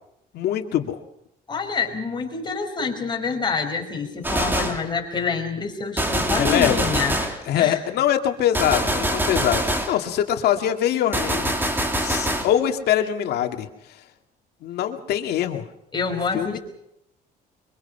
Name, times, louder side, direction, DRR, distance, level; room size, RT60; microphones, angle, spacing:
voice 1, 0.3-1.0 6.3-6.9 7.5-11.5 12.0-13.7 14.6-15.7 16.3-16.6, left 10 dB, 75° left, 5 dB, 2.3 m, -23 dB
voice 2, 1.5-7.8 15.9-16.6, left 5 dB, 25° left, 2 dB, 5.0 m, -27 dB
Gunshot gunfire, 4.2-4.9 6.0-7.4 8.5-10.0 11.1-12.5, right 1 dB, 10° right, 2.7 m, -24 dB
24.5 x 23.5 x 5.7 m, 0.82 s
cardioid pair, 110°, 17 cm